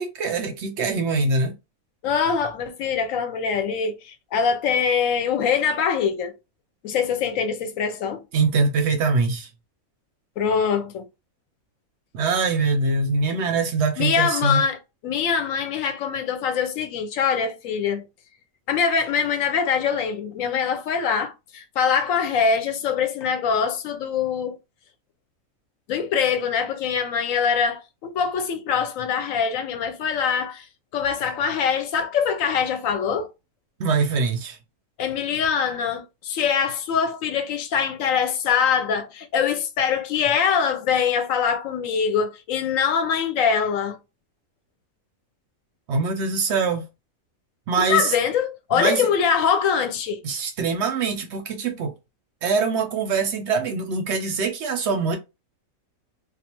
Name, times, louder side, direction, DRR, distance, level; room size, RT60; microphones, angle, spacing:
voice 1, 0.0-1.5 8.3-9.5 12.1-14.6 33.8-34.6 45.9-46.9 47.7-48.1 48.7-49.0 50.2-51.9 52.4-55.2, right 4 dB, 65° right, 0.7 m, -23 dB
voice 2, 2.0-6.3 6.8-8.2 10.4-11.0 14.0-18.0 18.7-24.6 25.9-30.7 30.9-33.3 35.0-44.0 47.8-50.2, left 6 dB, 70° left, 0.9 m, -23 dB
2.4 x 2.4 x 2.9 m
omnidirectional pair, 1.5 m